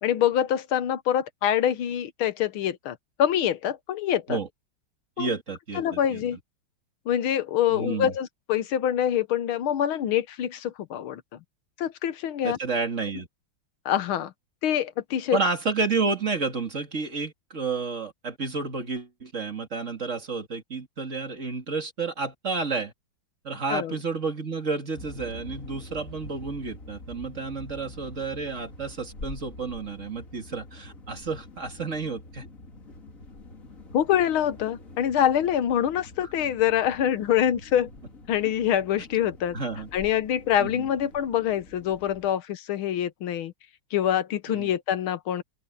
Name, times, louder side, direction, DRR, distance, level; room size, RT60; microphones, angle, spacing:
voice 1, 0.0-4.4 5.2-5.3 5.7-6.4 7.1-11.2 11.8-12.6 13.8-14.3 14.6-15.4 23.7-23.9 33.9-37.9 38.3-39.6 39.9-43.5 43.9-45.4, left 10 dB, 80° left, 1.8 m, -25 dB
voice 2, 5.2-6.4 7.7-8.1 12.4-13.3 15.3-22.9 23.4-32.5 39.5-39.9 40.6-40.9 44.5-44.7, right 4 dB, 35° right, 2.4 m, -30 dB
sound 1, 24.9-42.3, left 2 dB, 40° left, 2.9 m, -45 dB
open air
omnidirectional pair, 2.2 m